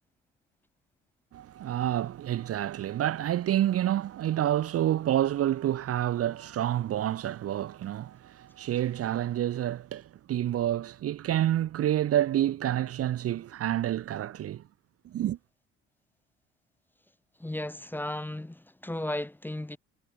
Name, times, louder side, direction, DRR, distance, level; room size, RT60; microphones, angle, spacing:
voice 1, 1.3-14.6 15.0-15.4, right 12 dB, 50° right, 0.9 m, -28 dB
voice 2, 17.4-19.8, left 1 dB, 5° left, 1.3 m, -35 dB
cardioid pair, 125°, 30 cm